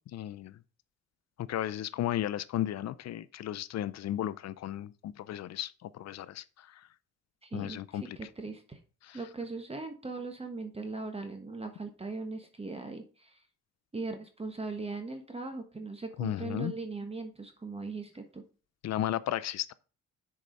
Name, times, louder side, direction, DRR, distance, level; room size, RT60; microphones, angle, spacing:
voice 1, 0.1-0.6 1.4-6.8 7.5-8.2 9.0-9.2 16.2-16.7 18.8-19.7, left 12 dB, 60° left, 0.6 m, -34 dB
voice 2, 7.4-8.8 9.1-13.4 13.9-18.4, right 3 dB, 20° right, 1.3 m, -39 dB
6.8 x 4.9 x 5.2 m
cardioid pair, 90°, 30 cm